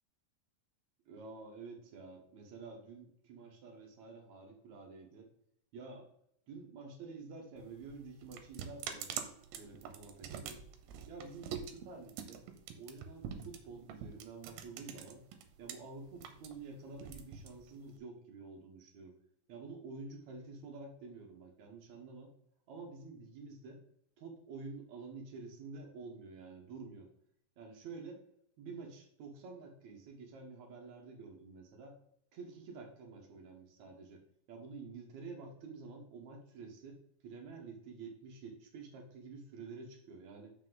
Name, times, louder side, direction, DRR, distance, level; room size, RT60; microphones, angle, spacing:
voice 1, 1.1-5.3 5.7-6.1 6.5-9.2 9.5-10.6 11.1-12.4 12.7-15.2 15.6-19.2 19.5-22.3 22.7-23.8 24.2-27.1 27.6-28.2 28.6-32.0 32.3-34.2 34.5-40.5, right 4 dB, 65° right, 2 dB, 1.9 m, -49 dB
sound 1, 7.6-15.7 16.1-18.0, right 8 dB, 85° right, 2.6 m, -45 dB
7.3 x 5.9 x 3.8 m, 0.70 s
omnidirectional pair, 4.4 m